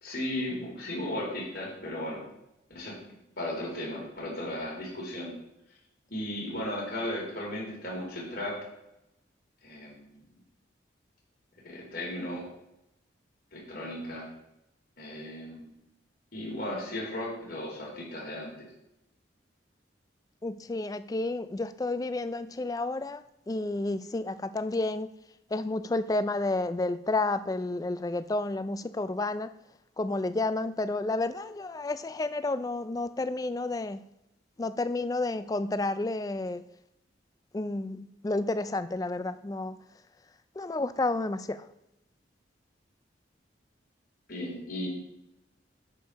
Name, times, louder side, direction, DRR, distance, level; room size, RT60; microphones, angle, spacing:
voice 1, 0.0-2.2 2.7-2.9 3.4-5.3 6.1-8.6 9.6-10.2 11.6-12.4 13.5-14.3 15.0-15.7 16.3-18.5 44.3-44.9, left 1 dB, 50° left, -4 dB, 3.7 m, -35 dB
voice 2, 20.4-25.1 25.5-29.5 30.0-34.0 34.6-36.6 37.5-39.8 40.6-41.7, left 2 dB, 20° left, 13 dB, 0.3 m, -31 dB
8.7 x 5.1 x 5.6 m, 0.88 s
head